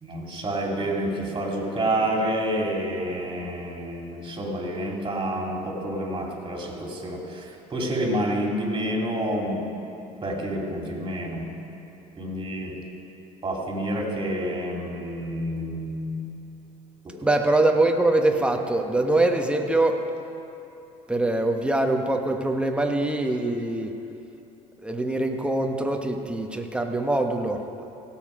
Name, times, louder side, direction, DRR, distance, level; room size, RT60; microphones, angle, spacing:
voice 1, 0.0-9.7 10.2-11.5 12.2-12.7 13.4-16.2 17.0-17.3, right 1 dB, 25° right, -1 dB, 3.0 m, -28 dB
voice 2, 17.2-20.0 21.1-23.9 24.8-27.9, right 2 dB, 5° right, 4 dB, 1.2 m, -23 dB
17.0 x 7.5 x 5.0 m, 2.8 s
hypercardioid pair, 65°, 18 cm